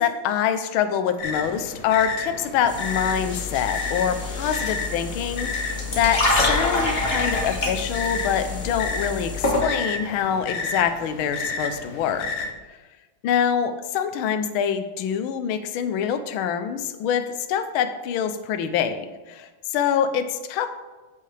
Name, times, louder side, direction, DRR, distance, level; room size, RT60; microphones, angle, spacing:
voice 1, 0.0-12.3 13.2-17.2 17.5-20.7, left 8 dB, 75° left, 9 dB, 1.5 m, -25 dB
sound 1, 1.2-12.5, left 4 dB, 55° left, 1.0 m, -32 dB
sound 2, 2.7-9.6, left 2 dB, 30° left, 1.6 m, -27 dB
14.0 x 5.6 x 3.3 m, 1.2 s
omnidirectional pair, 2.3 m